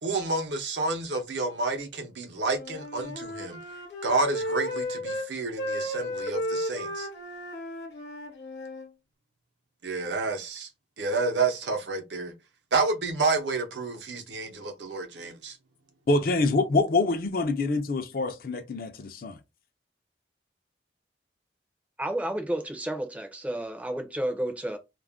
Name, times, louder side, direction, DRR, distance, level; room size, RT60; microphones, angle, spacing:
voice 1, 0.0-3.6 4.0-7.1 9.8-10.7 11.0-12.3 12.7-15.6, right 3 dB, 85° right, 0.7 m, -29 dB
Wind instrument woodwind instrument, 2.4-5.3 5.6-8.9, equal, 70° left, 0.8 m, -34 dB
voice 2, 16.1-19.4, left 3 dB, 55° left, 0.5 m, -25 dB
voice 3, 22.0-24.8, right 1 dB, 10° right, 0.4 m, -31 dB
2.4 x 2.1 x 3.4 m
head